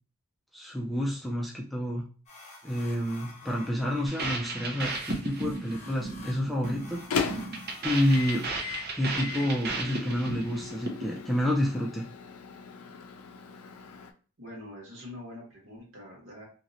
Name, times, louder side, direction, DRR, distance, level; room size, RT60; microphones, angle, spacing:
voice 1, 0.5-2.0 2.6-7.3 7.8-8.5 8.9-12.1, left 1 dB, ahead, -3 dB, 0.3 m, -29 dB
sound 1, 2.3-8.5, left 3 dB, 30° left, 0.8 m, -50 dB
sound 2, 4.1-11.3, right 3 dB, 45° right, 0.6 m, -35 dB
Microwave oven, 5.9-14.1, left 6 dB, 85° left, 0.4 m, -38 dB
voice 2, 14.4-16.4, left 1 dB, 60° right, -3 dB, 1.5 m, -44 dB
3.0 x 2.8 x 2.5 m, 0.39 s
head